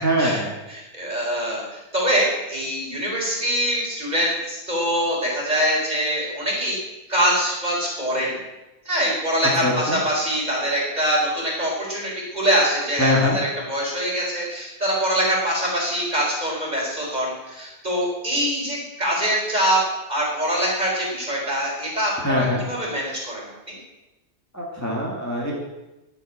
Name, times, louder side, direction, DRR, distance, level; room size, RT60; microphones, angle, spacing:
voice 1, 0.0-0.5 9.5-10.0 13.0-13.4 22.2-22.6 24.5-25.5, left 1 dB, 15° left, -3 dB, 2.3 m, -22 dB
voice 2, 0.7-6.8 7.1-8.4 8.8-19.8 20.1-23.8, equal, 35° right, -3 dB, 4.6 m, -24 dB
11.5 x 8.6 x 8.8 m, 1.0 s
omnidirectional pair, 1.2 m